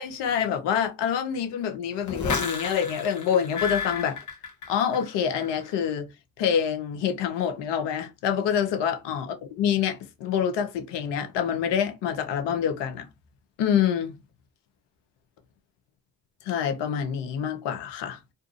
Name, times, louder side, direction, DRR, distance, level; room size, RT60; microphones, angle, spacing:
voice 1, 0.0-4.2 4.7-6.1 6.4-13.1 13.6-14.2 16.4-18.2, left 8 dB, 75° left, 0.7 m, -26 dB
sound 1, 2.1-5.1 5.4-5.9, left 5 dB, 45° left, 0.9 m, -32 dB
2.5 x 2.4 x 2.5 m
hypercardioid pair, 45°, 42 cm